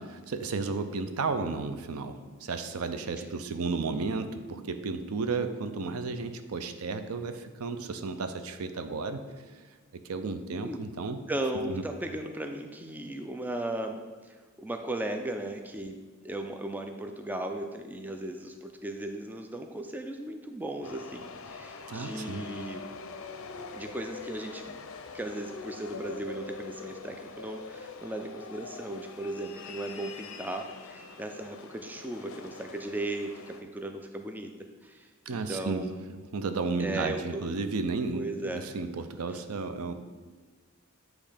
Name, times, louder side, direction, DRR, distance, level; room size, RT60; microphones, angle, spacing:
voice 1, 0.0-9.3 10.1-11.2 11.6-11.8 21.9-22.5 35.3-35.8 36.3-39.9, right 4 dB, 90° right, 9 dB, 0.5 m, -33 dB
voice 2, 11.3-16.0 16.2-22.9 23.7-24.8 25.1-34.5 34.8-36.1 36.8-37.5 38.1-38.6 39.3-39.4, right 1 dB, 10° right, 4 dB, 0.3 m, -37 dB
sound 1, 20.8-33.6, left 4 dB, 70° left, 0.5 m, -44 dB
8.6 x 3.1 x 5.0 m, 1.4 s
head